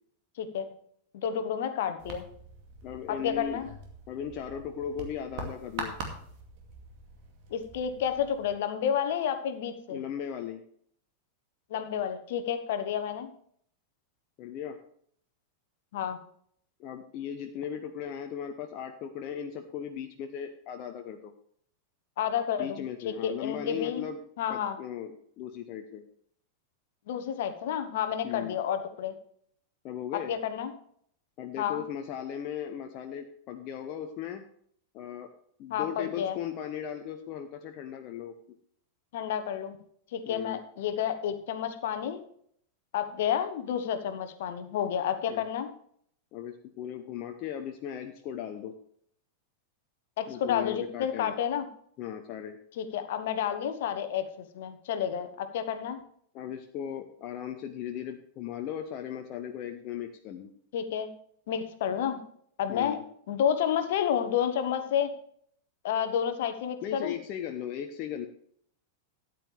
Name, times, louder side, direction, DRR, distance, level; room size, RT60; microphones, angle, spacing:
voice 1, 0.4-0.7 1.1-2.3 3.1-3.7 7.5-10.0 11.7-13.3 15.9-16.2 22.2-24.0 24.4-24.8 27.1-29.1 30.3-30.7 31.6-31.8 35.7-36.4 39.1-39.8 40.1-42.2 42.9-45.7 50.2-51.7 52.8-54.3 54.5-56.0 60.7-61.1 61.5-62.2 62.6-63.0 63.3-65.1 65.8-67.1, left 8 dB, 55° left, 9 dB, 1.1 m, -30 dB
sound 1, 2.0-8.5, right 3 dB, 45° right, 2.3 m, -43 dB
voice 2, 2.8-3.7 4.1-5.9 9.9-10.6 14.4-14.8 16.8-21.3 22.6-24.2 24.5-26.0 28.2-28.5 29.8-30.3 31.4-34.4 34.9-35.3 35.6-38.3 40.3-40.6 45.3-45.4 46.3-48.7 50.3-51.3 52.0-52.6 56.3-60.5 62.7-63.0 66.8-68.3, left 9 dB, 40° left, 5 dB, 0.9 m, -37 dB
13.5 x 9.4 x 3.4 m, 0.63 s
figure-of-eight pair, 90°, 0 cm